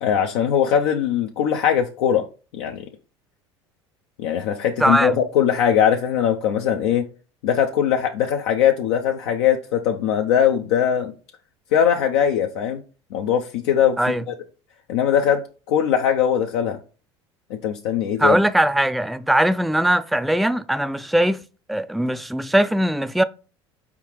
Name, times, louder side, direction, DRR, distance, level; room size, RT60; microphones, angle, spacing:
voice 1, 0.0-2.3 2.6-2.8 4.2-7.1 7.4-11.1 11.7-12.8 13.1-14.0 14.3-14.4 14.9-16.8 17.5-18.4, left 9 dB, 70° left, 0.5 m, -20 dB
voice 2, 4.8-5.2 14.0-14.2 18.2-21.4 21.7-23.2, right 1 dB, ahead, 0.3 m, -20 dB
4.7 x 3.5 x 3.0 m
hypercardioid pair, 70°, 14 cm